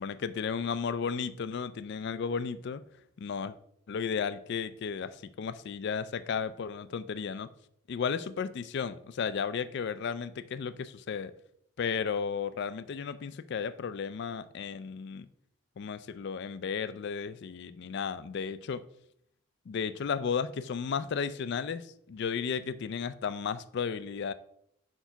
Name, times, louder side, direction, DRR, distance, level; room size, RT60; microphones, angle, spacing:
voice 1, 0.0-2.8 3.2-3.6 3.9-7.5 7.9-11.3 11.8-15.3 15.8-18.8 19.7-24.3, left 6 dB, 50° left, 0.3 m, -34 dB
4.5 x 4.5 x 5.6 m
head